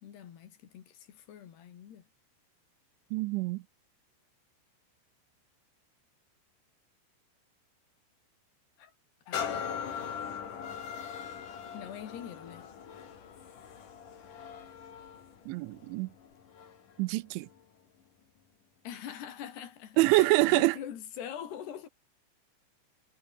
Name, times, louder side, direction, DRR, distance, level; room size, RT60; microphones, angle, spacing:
voice 1, 0.0-2.1 8.8-8.9 9.3-9.5 11.7-12.7 18.8-21.9, left 9 dB, 65° left, 4.3 m, -44 dB
voice 2, 3.1-3.6 15.5-16.1 17.0-17.5 20.0-20.8, right 21 dB, 80° right, 3.0 m, -25 dB
sound 1, 9.3-16.9 17.5-17.6, left 7 dB, 50° left, 4.0 m, -40 dB
omnidirectional pair, 5.4 m